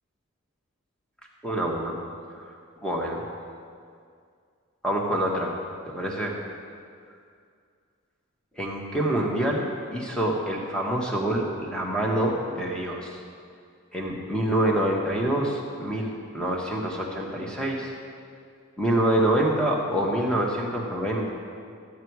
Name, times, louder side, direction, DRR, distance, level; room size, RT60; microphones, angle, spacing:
voice 1, 1.4-2.0 2.3-2.4 2.8-3.2 4.8-5.5 5.9-6.3 8.6-9.6 9.9-13.2 13.9-17.9 18.8-21.3, right 1 dB, 5° left, -2 dB, 1.3 m, -26 dB
14.0 x 8.4 x 4.7 m, 2.3 s
head